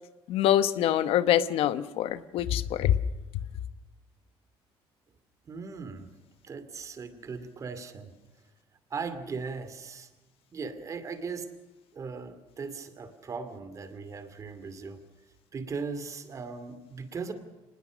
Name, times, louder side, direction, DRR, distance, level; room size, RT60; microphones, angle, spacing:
voice 1, 0.3-2.9, left 11 dB, 75° left, 14 dB, 1.0 m, -25 dB
voice 2, 5.5-6.1 6.4-8.1 8.9-10.1 10.5-11.5 11.9-15.0 15.5-17.3, right 4 dB, 35° right, 11 dB, 2.3 m, -38 dB
25.0 x 20.0 x 6.3 m, 1.1 s
cardioid pair, 150°, 10 cm